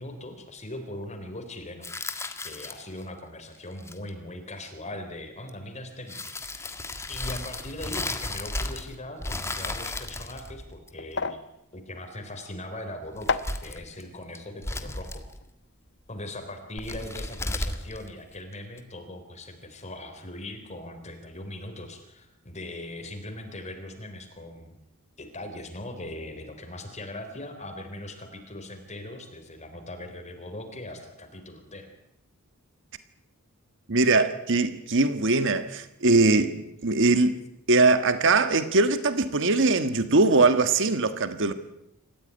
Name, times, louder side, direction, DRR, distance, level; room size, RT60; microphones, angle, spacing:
voice 1, 0.0-1.9 2.4-6.7 7.1-11.4 11.7-15.2 16.1-24.7 25.2-31.9, left 1 dB, 30° left, 3.6 m, -40 dB
sound 1, 1.8-3.0 3.7-4.1 5.5-5.6 6.1-9.0 9.2-11.1 13.1-14.0 14.4-15.4 16.8-18.8, left 2 dB, 10° left, 1.7 m, -34 dB
sound 2, 10.8-16.2 16.5-16.8, left 4 dB, 55° left, 1.2 m, -36 dB
voice 2, 33.9-37.4 37.7-41.5, right 3 dB, 60° right, 1.5 m, -21 dB
27.5 x 15.0 x 9.6 m
head